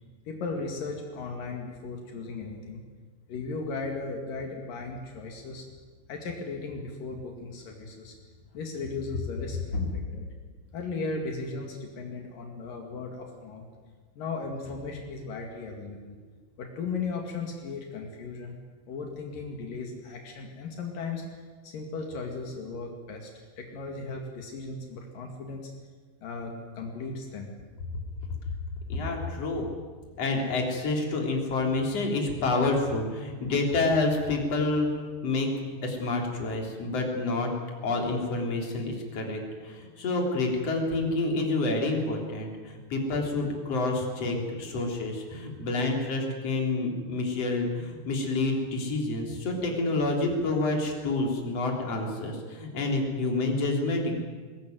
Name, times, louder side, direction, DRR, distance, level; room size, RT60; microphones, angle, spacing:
voice 1, 0.3-2.8 3.3-5.7 6.1-8.2 8.5-10.2 10.7-13.7 14.2-16.2 16.6-18.6 18.9-21.3 21.6-23.3 23.6-25.6 26.2-27.5 44.1-44.4, left 4 dB, 75° left, 2 dB, 3.9 m, -36 dB
voice 2, 28.9-29.7 30.2-35.5 35.8-37.5 37.8-54.2, left 2 dB, 45° left, 1 dB, 4.4 m, -28 dB
21.0 x 19.5 x 9.4 m, 1.5 s
omnidirectional pair, 3.9 m